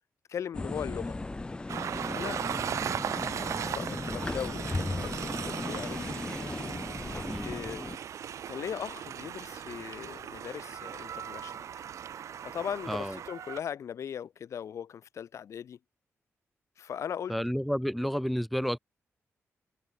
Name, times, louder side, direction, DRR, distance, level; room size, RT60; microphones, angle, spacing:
voice 1, 0.3-1.2 2.1-2.4 3.1-6.0 7.4-7.9 8.5-11.8 12.4-15.8 16.8-17.3, left 8 dB, 70° left, 2.5 m, -39 dB
sound 1, 0.5-8.0, left 2 dB, 20° left, 0.9 m, -36 dB
Train, 1.7-13.6, right 9 dB, 75° right, 1.7 m, -38 dB
voice 2, 12.9-13.2 17.3-18.8, equal, ahead, 1.4 m, -30 dB
wide cardioid pair, 120°, 5 cm